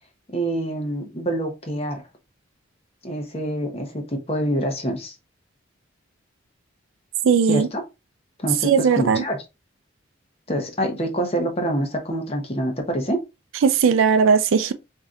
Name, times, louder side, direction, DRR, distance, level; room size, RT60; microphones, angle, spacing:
voice 1, 0.3-2.0 3.0-5.1 7.5-7.8 8.4-9.4 10.5-13.2, right 1 dB, 30° left, 0.8 m, -26 dB
voice 2, 7.2-7.7 8.6-9.2 13.6-14.7, right 6 dB, 75° right, 0.4 m, -18 dB
4.8 x 2.7 x 2.4 m
head